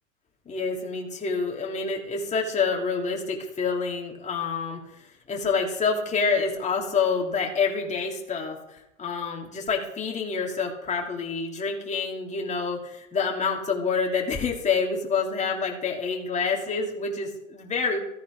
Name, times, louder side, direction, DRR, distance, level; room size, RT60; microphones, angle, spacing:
voice 1, 0.5-4.8 5.3-18.0, left 5 dB, 20° left, -1 dB, 2.9 m, -27 dB
15.0 x 10.5 x 3.7 m, 0.83 s
hypercardioid pair, 100°, 39 cm